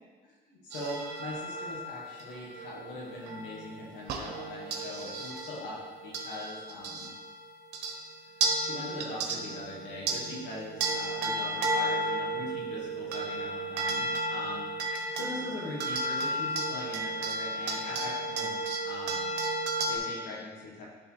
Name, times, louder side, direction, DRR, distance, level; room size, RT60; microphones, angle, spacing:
voice 1, 0.2-7.1 8.4-14.7 14.9-19.3 19.7-20.8, left 1 dB, 90° left, -5 dB, 2.4 m, -41 dB
sound 1, 0.7-7.3 7.7-8.0 8.4-20.0, right 2 dB, 75° right, 1.0 m, -33 dB
10.0 x 3.7 x 4.9 m, 1.4 s
supercardioid pair, 75°, 17 cm